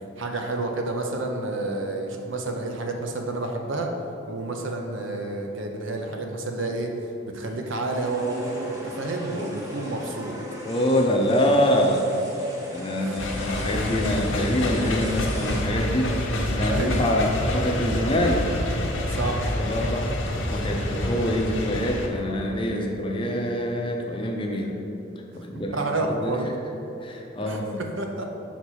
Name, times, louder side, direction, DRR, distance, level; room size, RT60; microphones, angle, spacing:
voice 1, 0.2-3.9 4.3-6.9 7.2-10.4 13.0-13.2 16.6-17.0 19.1-19.4 25.5-26.5 27.4-28.3, right 2 dB, 70° right, 3 dB, 0.7 m, -30 dB
sound 1, 7.9-15.6, left 1 dB, 15° right, 1.0 m, -37 dB
voice 2, 10.6-12.1 12.7-18.5 19.1-24.7 25.3-26.5 27.0-27.8, equal, 25° left, 1 dB, 0.6 m, -25 dB
sound 2, 13.2-22.1, left 1 dB, 70° left, 0.8 m, -27 dB
5.8 x 4.1 x 6.3 m, 2.9 s
head